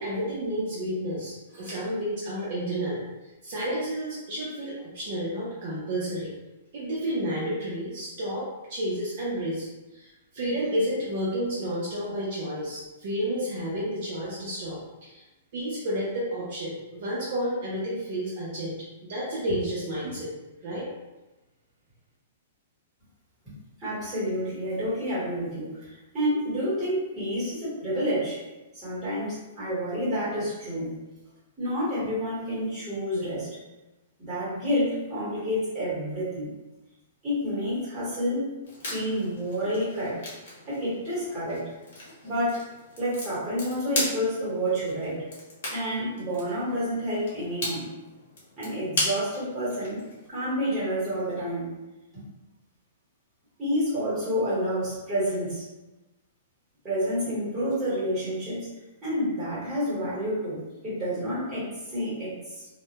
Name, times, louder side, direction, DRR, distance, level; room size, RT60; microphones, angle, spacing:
voice 1, 0.0-3.0 3.4-6.3 6.7-9.7 9.9-15.2 15.5-18.8 19.1-20.3 20.6-20.9, equal, 40° right, -7 dB, 0.5 m, -31 dB
voice 2, 23.8-28.4 28.7-31.0 31.6-33.5 34.2-36.5 37.2-38.5 38.8-40.2 40.7-41.7 42.2-42.6 43.0-45.2 45.7-47.9 48.6-50.0 50.3-51.7 52.1-52.2 53.6-55.6 56.8-58.7 59.0-62.7, equal, 10° right, -11 dB, 1.0 m, -29 dB
sound 1, 38.6-50.3, left 1 dB, 50° left, 0.8 m, -37 dB
2.1 x 2.1 x 2.8 m, 1.1 s
hypercardioid pair, 175°, 0 cm